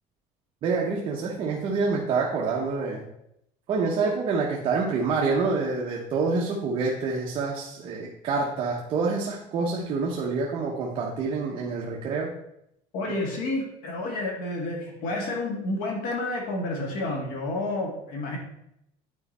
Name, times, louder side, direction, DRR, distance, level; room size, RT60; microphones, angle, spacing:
voice 1, 0.6-3.0 3.7-12.3, right 4 dB, 35° right, -2 dB, 0.9 m, -27 dB
voice 2, 12.9-18.4, left 2 dB, 65° left, 1 dB, 1.9 m, -30 dB
9.7 x 4.4 x 4.2 m, 0.78 s
cardioid pair, 180°, 15 cm